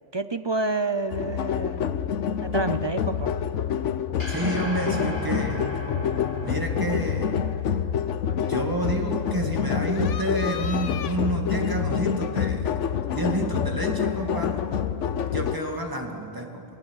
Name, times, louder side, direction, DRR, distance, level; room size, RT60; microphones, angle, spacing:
voice 1, 0.1-1.8 2.4-3.3, right 2 dB, 35° right, 10 dB, 0.5 m, -28 dB
sound 1, 1.1-15.6, left 8 dB, 90° left, 1.1 m, -27 dB
sound 2, 4.2-8.6, left 1 dB, 45° left, 3.2 m, -35 dB
voice 2, 4.3-5.6 6.5-7.4 8.3-12.7 13.1-14.7 15.3-16.6, right 1 dB, 15° right, 1 dB, 2.2 m, -29 dB
27.0 x 18.5 x 6.5 m, 2.9 s
omnidirectional pair, 1.2 m